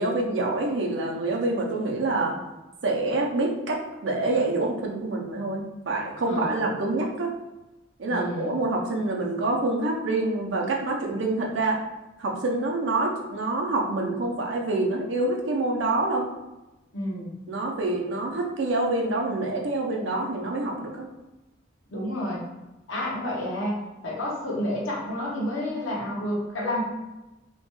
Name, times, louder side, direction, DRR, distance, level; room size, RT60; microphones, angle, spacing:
voice 1, 0.0-2.3 2.8-7.3 8.0-11.8 12.2-16.2 17.5-21.0, right 2 dB, 70° right, 0 dB, 0.6 m, -26 dB
voice 2, 6.3-6.6 8.1-8.5 16.9-17.4 21.9-22.4 22.9-26.8, left 1 dB, 85° left, -4 dB, 0.9 m, -30 dB
2.9 x 2.2 x 3.0 m, 1.0 s
head